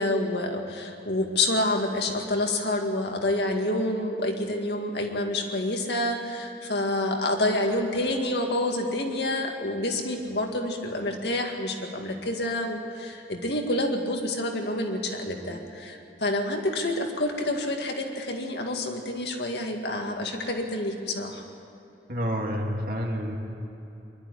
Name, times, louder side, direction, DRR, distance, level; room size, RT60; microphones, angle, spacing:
voice 1, 0.0-21.4, left 1 dB, 75° left, 2 dB, 2.0 m, -28 dB
voice 2, 22.1-23.4, equal, 55° right, 0 dB, 2.6 m, -29 dB
23.0 x 12.0 x 9.9 m, 3.0 s
head